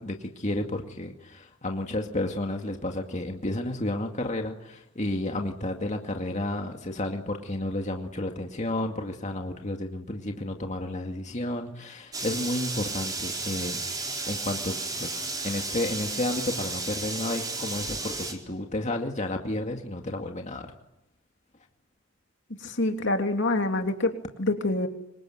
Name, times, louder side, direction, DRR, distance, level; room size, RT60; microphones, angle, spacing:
voice 1, 0.0-13.9 14.3-15.2 15.4-20.7, left 1 dB, 35° left, 3 dB, 2.2 m, -31 dB
sound 1, 12.1-18.3, right 3 dB, 20° right, 4.2 m, -33 dB
voice 2, 22.6-24.1 24.4-24.9, left 2 dB, 60° left, 4 dB, 3.1 m, -26 dB
26.0 x 23.5 x 9.3 m, 0.89 s
head